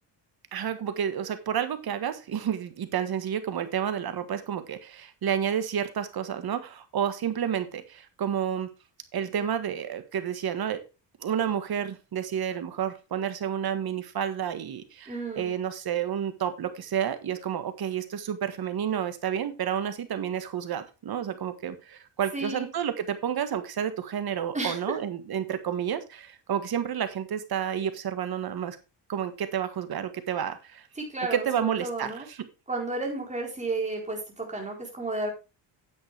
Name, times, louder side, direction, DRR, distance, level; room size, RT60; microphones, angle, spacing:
voice 1, 0.5-8.7 9.1-10.8 11.2-28.8 29.1-30.9 31.3-32.5, right 9 dB, 55° right, 10 dB, 1.7 m, -30 dB
voice 2, 15.1-15.5 22.3-22.7 24.5-24.8 31.0-32.3 32.7-35.3, right 2 dB, 15° right, 1 dB, 4.3 m, -32 dB
9.9 x 8.0 x 3.5 m, 0.29 s
cardioid pair, 105°, 45 cm